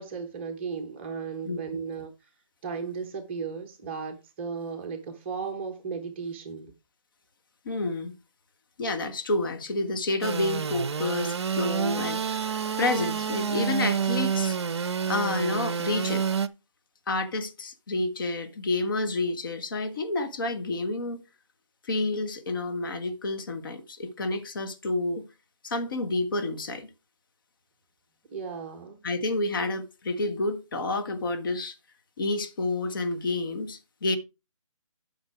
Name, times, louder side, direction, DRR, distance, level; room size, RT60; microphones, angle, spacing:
voice 1, 0.0-2.1 2.6-6.7 28.3-29.0, right 5 dB, 20° right, 1.1 m, -35 dB
voice 2, 7.6-8.1 8.8-14.6 15.1-16.2 17.1-21.2 21.8-25.3 25.6-26.9 29.0-31.7 32.2-34.2, left 2 dB, 40° left, 1.3 m, -29 dB
Engine / Sawing, 10.2-16.5, right 6 dB, 50° right, 0.7 m, -28 dB
9.0 x 5.7 x 4.6 m
figure-of-eight pair, 155°, 18 cm